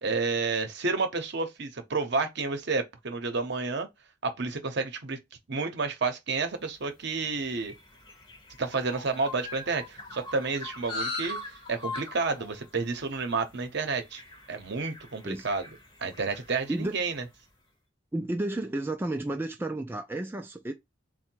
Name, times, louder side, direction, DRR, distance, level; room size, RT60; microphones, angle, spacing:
voice 1, 0.0-3.9 4.2-5.2 5.5-7.7 8.6-11.4 11.7-14.2 14.5-15.7 16.0-17.2, right 4 dB, 60° right, 0.8 m, -30 dB
sound 1, 6.7-17.3, left 2 dB, 25° left, 0.7 m, -42 dB
voice 2, 18.1-20.7, right 1 dB, 10° right, 0.3 m, -32 dB
3.8 x 2.2 x 4.4 m
head